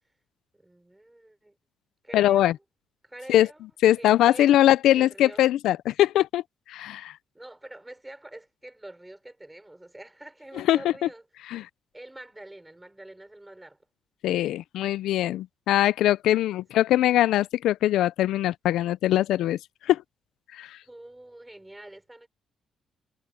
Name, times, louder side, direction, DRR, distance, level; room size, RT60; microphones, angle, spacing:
voice 1, 0.5-1.5 2.0-2.6 3.0-3.6 4.0-4.5 4.9-5.5 7.3-11.3 11.9-13.8 20.8-22.3, right 1 dB, 10° right, 5.2 m, -46 dB
voice 2, 2.1-2.5 3.3-3.5 3.8-6.4 6.7-7.1 10.7-10.8 11.5-11.6 14.2-19.6 19.9-20.0 20.5-20.7, left 13 dB, 85° left, 0.4 m, -22 dB
cardioid pair, 110°, 0 cm